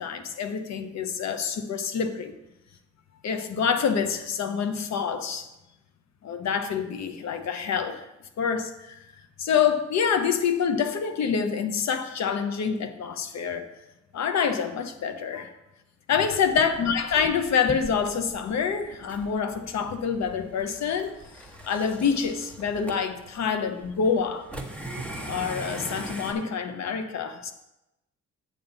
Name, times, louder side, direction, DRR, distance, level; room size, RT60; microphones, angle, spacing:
voice 1, 0.0-2.3 3.2-5.5 6.2-8.0 8.4-9.0 9.4-13.6 14.1-15.5 16.1-21.1 21.7-24.5 25.3-27.5, left 6 dB, 60° left, 8 dB, 1.0 m, -26 dB
sound 1, 16.3-26.3, right 1 dB, 5° left, 1.3 m, -41 dB
8.6 x 7.1 x 4.1 m, 0.92 s
cardioid pair, 90°, 30 cm